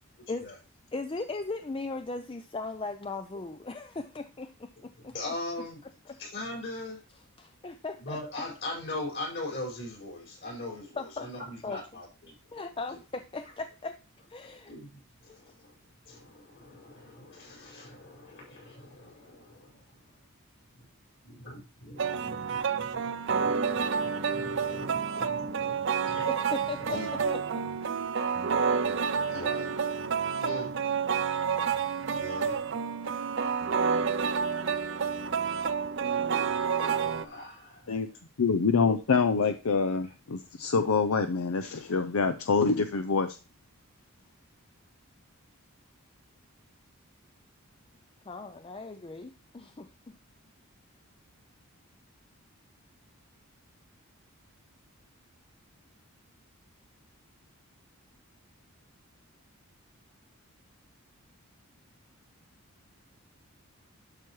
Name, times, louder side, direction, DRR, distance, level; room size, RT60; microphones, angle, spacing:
voice 1, 0.9-5.1 6.1-6.2 7.4-8.2 11.0-11.3 11.6-11.8 12.5-14.0 14.3-14.7 15.5-15.6 26.0-27.0 27.3-27.6 48.2-50.2, left 3 dB, 25° left, 8 dB, 0.4 m, -38 dB
voice 2, 5.1-5.8 6.2-7.0 8.0-12.3 12.9-13.0 14.4-15.7 16.1-19.8 20.8-20.9 21.2-23.0 24.0-25.8 26.0-26.3 26.8-27.4 29.1-31.4 32.1-32.6 34.9-35.6 36.3-36.4 36.7-38.0, left 2 dB, 55° left, -2 dB, 5.2 m, -41 dB
sound 1, 22.0-37.3, right 6 dB, 55° right, 0.5 m, -29 dB
voice 3, 38.4-43.4, left 5 dB, 80° left, 9 dB, 0.6 m, -26 dB
11.5 x 6.0 x 3.1 m, 0.30 s
head